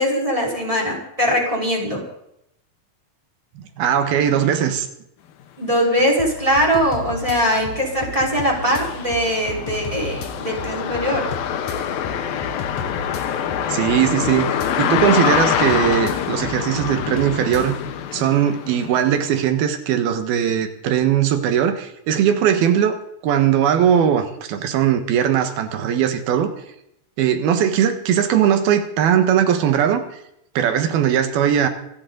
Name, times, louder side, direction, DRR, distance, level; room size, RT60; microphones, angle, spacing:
voice 1, 0.0-2.0 5.6-11.3, equal, 10° right, -2 dB, 4.5 m, -21 dB
voice 2, 3.6-4.9 13.7-17.8 18.1-23.0 23.2-26.5 27.2-30.1 30.6-31.7, right 9 dB, 90° right, 8 dB, 3.4 m, -19 dB
sound 1, 6.0-6.1 6.5-19.4, left 9 dB, 85° left, 2.9 m, -26 dB
sound 2, 6.2-17.9, left 3 dB, 60° left, 2.5 m, -35 dB
26.0 x 11.0 x 4.0 m, 0.77 s
omnidirectional pair, 4.2 m